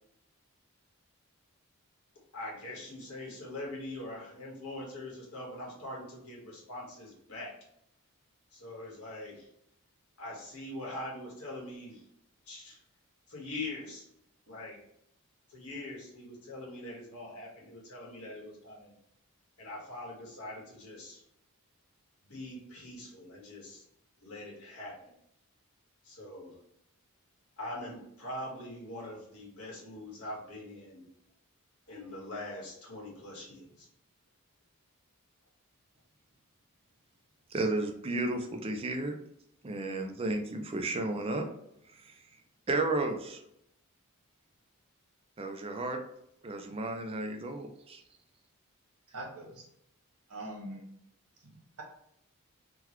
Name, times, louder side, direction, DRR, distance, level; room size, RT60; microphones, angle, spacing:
voice 1, 2.3-7.5 8.5-9.5 10.2-12.0 12.5-12.8 13.3-14.1 14.5-14.8 15.5-18.9 19.6-21.2 22.3-23.8 24.2-25.1 26.0-26.5 27.6-31.0 31.9-33.9, left 1 dB, 80° left, -3 dB, 1.4 m, -43 dB
voice 2, 37.5-39.2 39.6-41.4 41.9-42.2 42.7-43.4 45.4-46.0 46.4-48.0, right 2 dB, 25° right, 5 dB, 0.4 m, -33 dB
voice 3, 49.1-49.6 50.3-50.8, right 1 dB, 85° right, -1 dB, 1.2 m, -42 dB
3.7 x 2.2 x 3.0 m, 0.75 s
head